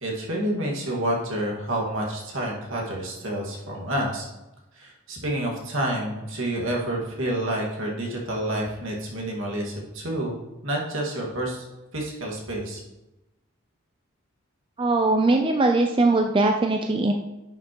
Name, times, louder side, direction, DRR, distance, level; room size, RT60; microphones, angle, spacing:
voice 1, 0.0-4.3 4.8-10.4 10.6-11.6 11.9-12.8, right 1 dB, 70° right, -2 dB, 1.8 m, -29 dB
voice 2, 14.8-17.1, right 2 dB, 25° right, 3 dB, 0.4 m, -21 dB
11.0 x 5.8 x 3.0 m, 0.99 s
head